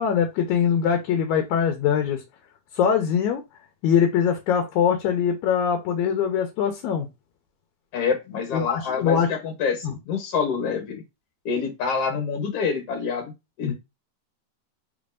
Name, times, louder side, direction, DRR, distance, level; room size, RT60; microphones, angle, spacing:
voice 1, 0.0-2.2 2.7-3.4 3.8-7.1 8.5-9.3 9.8-10.0 13.6-13.7, left 7 dB, 75° left, 2.2 m, -22 dB
voice 2, 7.9-11.0 11.5-13.3 13.6-13.7, left 5 dB, 60° left, 1.9 m, -27 dB
5.2 x 4.0 x 2.5 m
omnidirectional pair, 3.5 m